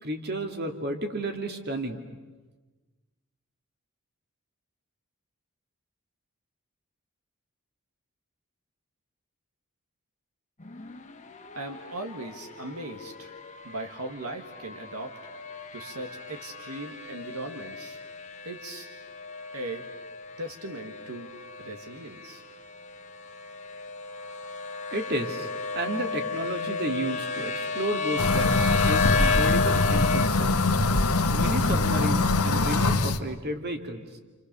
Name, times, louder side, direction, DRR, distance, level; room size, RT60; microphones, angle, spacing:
voice 1, 0.0-2.0 24.9-25.5 25.7-30.6 31.3-34.2, right 1 dB, 50° right, 5 dB, 2.4 m, -32 dB
sound 1, 10.6-30.3, left 4 dB, 35° left, 1.5 m, -33 dB
voice 2, 11.5-13.3 13.6-15.2 15.7-18.0 18.4-18.9 19.5-19.9 20.4-22.4, right 1 dB, 75° right, 4 dB, 2.0 m, -39 dB
sound 2, 28.2-33.2, left 3 dB, 90° left, 1.4 m, -23 dB
29.0 x 28.5 x 6.9 m, 1.2 s
head